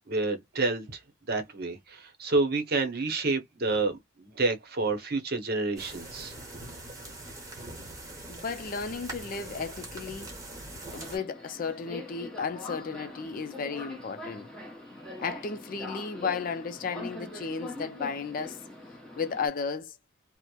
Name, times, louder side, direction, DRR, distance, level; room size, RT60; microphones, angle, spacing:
voice 1, 0.1-1.0 1.3-6.3, right 3 dB, 50° right, 0.7 m, -29 dB
sound 1, 5.8-11.2, right 2 dB, 15° right, 1.0 m, -42 dB
voice 2, 8.3-10.4 10.9-14.5 15.2-18.6 19.2-19.9, left 5 dB, 45° left, 0.4 m, -34 dB
Subway metro underground, 9.9-19.5, left 2 dB, 5° left, 0.8 m, -43 dB
2.9 x 2.0 x 2.2 m
head